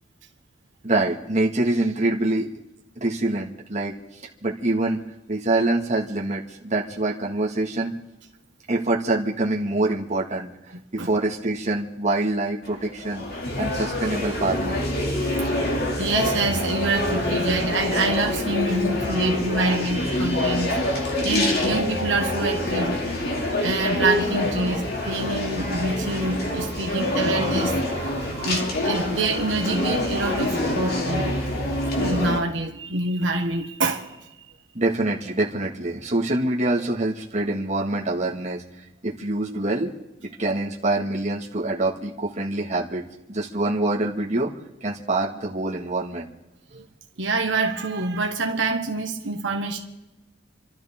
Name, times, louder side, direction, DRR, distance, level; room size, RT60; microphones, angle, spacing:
voice 1, 0.8-2.5 3.0-5.0 5.3-8.0 8.7-10.5 10.9-13.2 13.6-14.8 34.7-38.6 39.0-39.9 40.2-43.0 43.3-44.5 44.8-46.3 46.7-46.8, right 2 dB, 40° right, 1.8 m, -25 dB
sound 1, 12.6-32.4, left 1 dB, 55° left, 2.6 m, -26 dB
voice 2, 15.0-15.5 16.0-20.8 21.2-23.0 23.6-31.4 31.9-34.3 47.2-49.8, right 2 dB, 70° right, 1.4 m, -26 dB
29.5 x 12.5 x 3.7 m
head